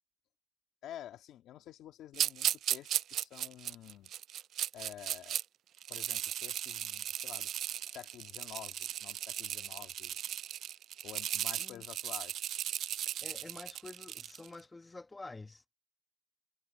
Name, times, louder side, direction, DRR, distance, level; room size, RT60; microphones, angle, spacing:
voice 1, 0.8-4.1 4.7-5.4 5.9-7.5 7.8-10.2 11.0-12.4, left 11 dB, 80° left, 1.9 m, -50 dB
sound 1, 2.1-5.4 5.8-14.5, right 11 dB, 70° right, 0.3 m, -36 dB
voice 2, 13.2-15.7, left 3 dB, 15° left, 1.0 m, -49 dB
cardioid pair, 125°, 0 cm